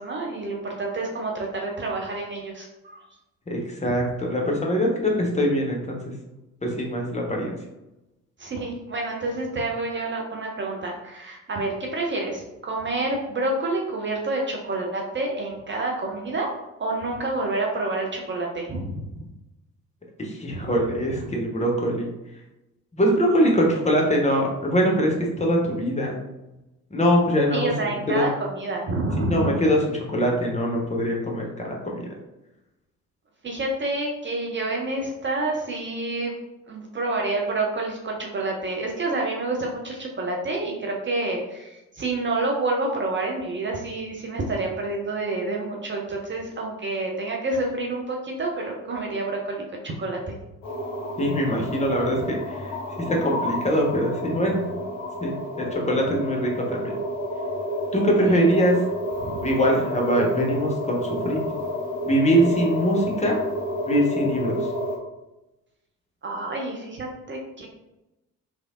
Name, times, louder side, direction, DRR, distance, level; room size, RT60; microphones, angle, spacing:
voice 1, 0.0-3.0 8.4-16.5 16.8-19.2 20.5-20.7 21.1-21.3 27.5-29.6 33.4-36.3 36.7-50.3 58.2-58.5 59.2-59.5 66.2-67.7, right 2 dB, 25° right, 0 dB, 0.6 m, -28 dB
voice 2, 3.5-6.0 6.6-7.6 20.2-22.1 22.9-26.2 26.9-27.7 28.1-28.2 29.2-32.0 51.2-54.6 55.2-56.9 57.9-58.8 59.4-61.4 62.1-63.4 63.9-64.5, equal, 15° left, -1 dB, 0.8 m, -23 dB
sound 1, 50.6-65.0, left 1 dB, 40° left, 1.0 m, -30 dB
3.2 x 2.7 x 2.4 m, 0.95 s
figure-of-eight pair, 45°, 42 cm